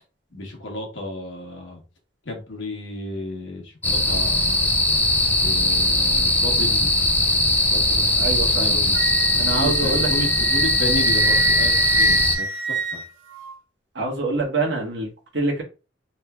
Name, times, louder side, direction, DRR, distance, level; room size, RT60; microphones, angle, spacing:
voice 1, 0.3-1.8 2.2-4.7 5.4-7.0 7.6-9.0 9.3-13.0, left 1 dB, 70° left, 1.1 m, -33 dB
sound 1, 3.8-12.4, left 1 dB, 10° left, 0.4 m, -20 dB
voice 2, 8.2-8.8 9.4-10.1 13.9-15.1 15.3-15.6, right 2 dB, 65° right, 1.4 m, -25 dB
Wind instrument woodwind instrument, 8.9-13.5, right 3 dB, 85° right, 0.7 m, -25 dB
3.3 x 3.0 x 2.4 m
head